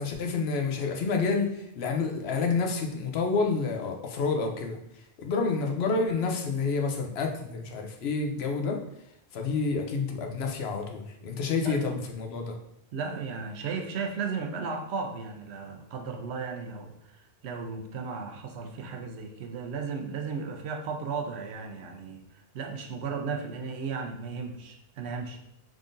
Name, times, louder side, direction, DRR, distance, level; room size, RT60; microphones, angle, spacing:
voice 1, 0.0-4.8 5.2-8.8 9.3-12.5, left 4 dB, 75° left, 3 dB, 0.9 m, -29 dB
voice 2, 11.6-12.0 12.9-22.2 22.5-25.4, right 5 dB, 80° right, 4 dB, 0.9 m, -35 dB
3.7 x 3.6 x 2.5 m, 0.76 s
omnidirectional pair, 1.1 m